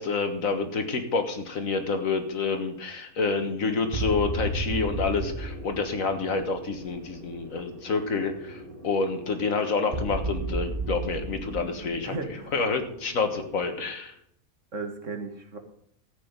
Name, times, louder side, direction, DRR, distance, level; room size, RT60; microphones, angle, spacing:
voice 1, 0.0-12.1 12.5-14.1, left 4 dB, 75° left, 6 dB, 1.9 m, -28 dB
sound 1, 3.3-13.8, right 2 dB, 40° right, 1.9 m, -35 dB
voice 2, 12.0-12.5 14.7-15.6, right 3 dB, 60° right, 5 dB, 2.1 m, -35 dB
13.5 x 8.4 x 5.2 m, 0.70 s
omnidirectional pair, 1.5 m